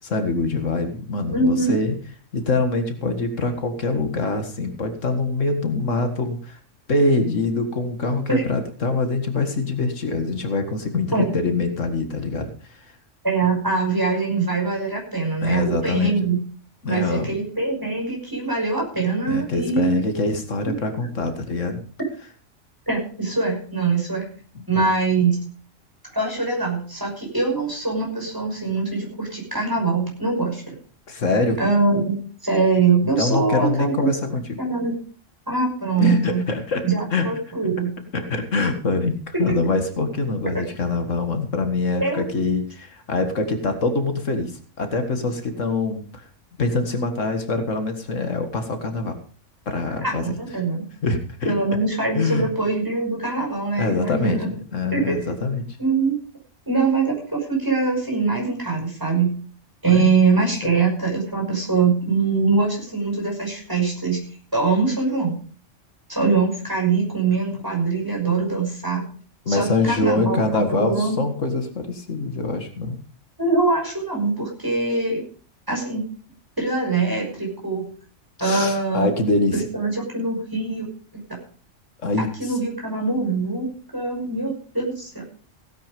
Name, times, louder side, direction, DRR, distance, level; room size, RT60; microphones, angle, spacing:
voice 1, 0.0-2.0 2.3-6.6 6.9-12.9 15.4-16.3 16.8-17.4 19.3-21.8 24.7-24.8 31.1-31.6 33.2-34.6 36.0-36.8 37.1-37.3 38.1-46.2 46.6-49.2 49.7-50.2 51.0-51.5 52.1-52.5 53.8-55.7 59.9-60.1 60.6-60.7 69.5-73.0 78.4-79.6 82.0-82.6, left 3 dB, 85° left, 7 dB, 2.2 m, -24 dB
voice 2, 1.3-1.8 8.3-8.4 11.1-11.2 13.2-16.4 16.9-20.0 20.6-20.8 22.9-24.2 24.7-25.4 26.1-30.6 31.6-32.2 32.4-34.1 34.6-34.9 35.5-36.4 36.8-37.9 40.5-40.6 42.0-42.4 50.0-50.8 51.5-54.5 54.9-55.1 55.8-56.2 56.7-59.3 59.8-64.2 64.5-65.4 66.1-69.0 69.5-71.2 73.4-75.2 75.7-76.0 76.6-77.9 78.4-79.1 79.5-80.9 82.2-85.2, right 4 dB, 15° right, -1 dB, 6.1 m, -23 dB
16.5 x 9.1 x 5.2 m, 0.43 s
omnidirectional pair, 1.3 m